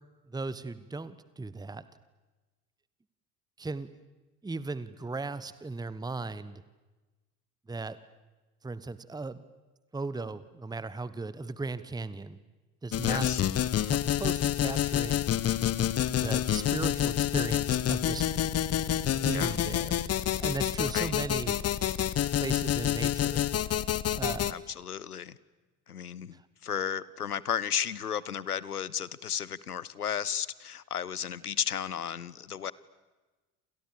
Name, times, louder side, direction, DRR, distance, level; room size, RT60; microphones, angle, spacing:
voice 1, 0.3-1.8 3.6-3.9 4.4-6.6 7.7-8.0 8.6-9.4 9.9-12.4 12.8-13.3 13.9-15.2 16.2-18.2 19.2-19.9 20.4-21.6 22.4-23.4 24.1-24.5 26.3-26.4, right 3 dB, 10° right, 15 dB, 1.2 m, -36 dB
sound 1, 12.9-24.5, left 11 dB, 35° left, 1.2 m, -28 dB
voice 2, 13.0-13.4 19.2-19.6 20.9-21.1 24.5-25.4 25.9-32.7, left 8 dB, 85° left, 21 dB, 0.8 m, -34 dB
28.5 x 28.5 x 7.0 m, 1.2 s
figure-of-eight pair, 60°, 45 cm